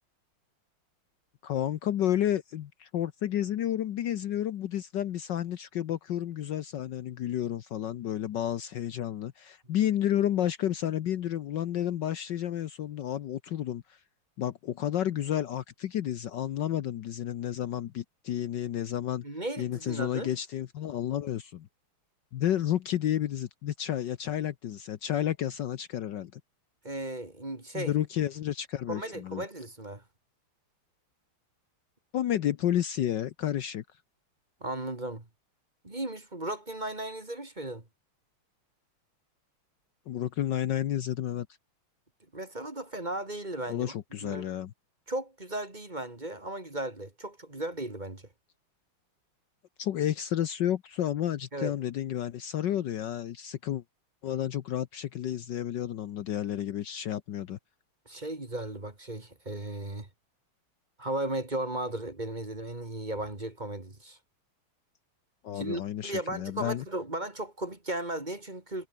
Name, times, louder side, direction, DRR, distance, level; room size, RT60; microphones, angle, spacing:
voice 1, 1.4-14.0 14.4-19.2 19.6-21.7 22.3-26.4 27.7-29.4 32.1-33.8 40.1-41.5 43.7-44.7 49.8-53.8 54.2-57.6 65.4-66.8, left 11 dB, 65° left, 1.4 m, -31 dB
voice 2, 19.2-20.3 26.8-27.9 28.9-30.0 34.6-35.2 35.8-37.8 42.3-43.9 44.2-44.5 45.1-48.2 51.5-51.7 58.1-60.1 61.0-64.2 65.5-68.9, right 1 dB, 20° right, 2.6 m, -36 dB
omnidirectional pair, 2.3 m